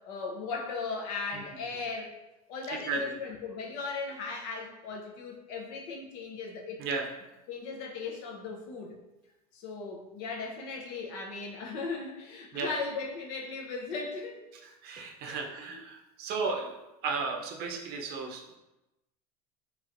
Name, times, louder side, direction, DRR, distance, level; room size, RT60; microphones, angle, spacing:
voice 1, 0.0-2.1 2.5-6.8 7.5-9.0 9.5-14.4 15.3-15.8, left 4 dB, 65° left, 0 dB, 0.7 m, -37 dB
voice 2, 2.7-3.1 6.8-7.1 12.5-12.8 14.6-16.8 17.0-18.6, right 4 dB, 55° right, 3 dB, 0.6 m, -34 dB
3.0 x 3.0 x 2.5 m, 0.97 s
hypercardioid pair, 85°, 20 cm